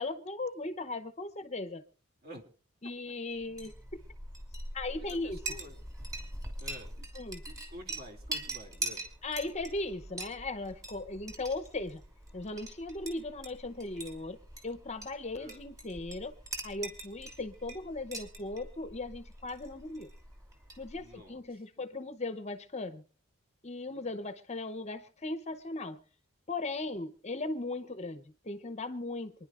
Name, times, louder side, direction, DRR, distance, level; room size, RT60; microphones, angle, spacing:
voice 1, 0.0-1.8 2.8-3.7 4.7-5.4 7.2-7.4 9.2-12.0 12.3-14.4 14.6-16.3 16.6-20.1 20.8-23.0 23.6-26.0 26.5-29.3, left 2 dB, 30° left, 0.8 m, -38 dB
Chink clink, 3.4-21.2, right 2 dB, 15° right, 2.9 m, -43 dB
voice 2, 5.0-5.8 6.6-7.1 7.4-9.0 15.3-15.6 20.9-21.6 23.9-24.2, equal, 45° right, 2.7 m, -50 dB
27.0 x 10.5 x 2.5 m
head